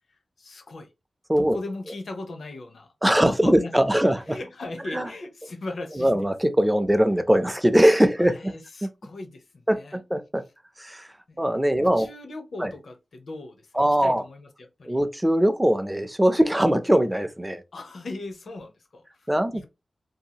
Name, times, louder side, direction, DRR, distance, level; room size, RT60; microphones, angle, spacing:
voice 1, 0.4-0.9 1.4-6.3 8.2-10.0 11.3-11.4 11.8-15.0 17.7-19.7, left 2 dB, 70° left, 0.6 m, -39 dB
voice 2, 3.0-4.4 4.9-5.1 6.0-8.5 9.7-10.4 10.8-11.1 11.4-12.1 12.6-12.7 13.8-14.2 14.9-17.6 19.3-19.7, equal, 10° right, 0.4 m, -21 dB
2.7 x 2.3 x 2.8 m
wide cardioid pair, 115°, 0 cm